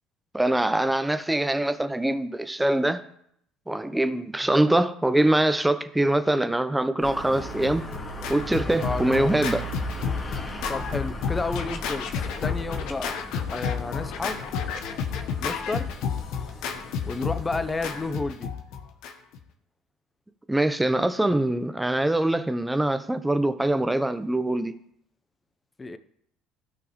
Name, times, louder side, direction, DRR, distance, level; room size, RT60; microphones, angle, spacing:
voice 1, 0.3-3.0 3.7-7.9 8.3-9.7 20.5-24.7, right 1 dB, 10° right, 0.9 m, -23 dB
sound 1, 7.0-18.1, right 1 dB, 40° left, 2.5 m, -38 dB
Scratching (performance technique), 7.3-19.4, left 7 dB, 65° left, 1.0 m, -31 dB
voice 2, 8.8-9.4 10.7-13.1 13.5-14.4 15.4-15.9 17.1-18.5 25.8-26.0, left 3 dB, 25° left, 0.8 m, -31 dB
16.0 x 6.0 x 3.2 m
hypercardioid pair, 60°, 0 cm